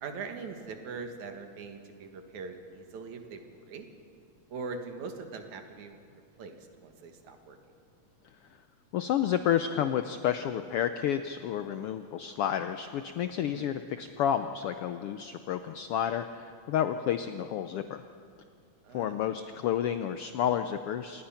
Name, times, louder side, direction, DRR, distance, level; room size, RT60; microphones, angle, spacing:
voice 1, 0.0-3.9 4.5-6.0 6.4-6.5 6.8-7.6 13.5-13.7 18.8-19.2, right 4 dB, 80° right, 6 dB, 3.0 m, -41 dB
voice 2, 8.9-18.0 18.9-21.2, left 9 dB, 80° left, 9 dB, 1.3 m, -30 dB
27.5 x 19.5 x 5.8 m, 2.4 s
omnidirectional pair, 3.3 m